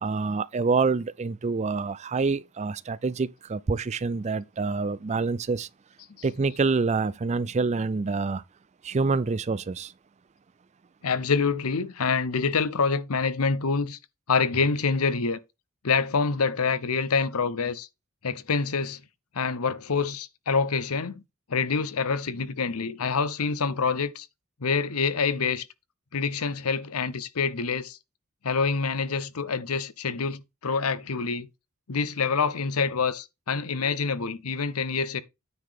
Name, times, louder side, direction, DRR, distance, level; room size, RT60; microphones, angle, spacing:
voice 1, 0.0-5.7 6.2-8.4 8.8-9.9, right 4 dB, 30° right, 0.4 m, -27 dB
voice 2, 11.0-14.0 14.3-15.4 15.8-17.9 18.2-19.0 19.3-21.2 21.5-24.3 24.6-25.7 26.1-28.0 28.4-31.5 31.9-35.2, left 5 dB, 85° left, 0.8 m, -26 dB
9.5 x 3.9 x 6.6 m
head